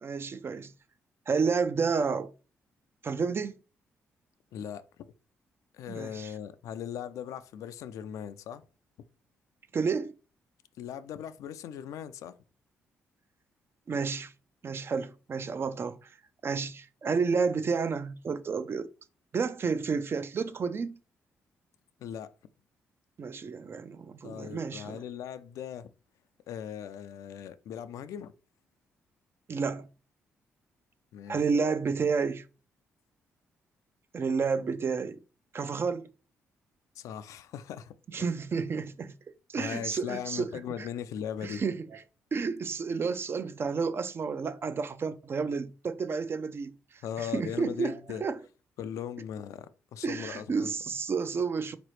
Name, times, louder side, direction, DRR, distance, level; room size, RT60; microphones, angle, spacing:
voice 1, 0.0-0.7 1.3-2.3 3.0-3.5 5.9-6.3 9.7-10.1 13.9-14.3 14.6-16.1 16.4-18.9 19.3-21.0 23.2-25.0 29.5-29.9 31.3-32.4 34.1-35.2 35.5-36.1 38.1-39.1 39.5-40.5 40.8-40.9 41.4-42.0 42.3-48.4 50.0-51.8, right 5 dB, 45° right, 0.4 m, -31 dB
voice 2, 4.5-5.1 5.7-8.6 10.8-12.3 22.0-22.3 24.2-25.9 26.5-28.3 31.1-31.4 37.0-38.3 39.6-41.6 47.0-48.3 48.8-50.7, left 9 dB, 75° left, 0.3 m, -39 dB
4.0 x 2.9 x 3.1 m
supercardioid pair, 55°, 6 cm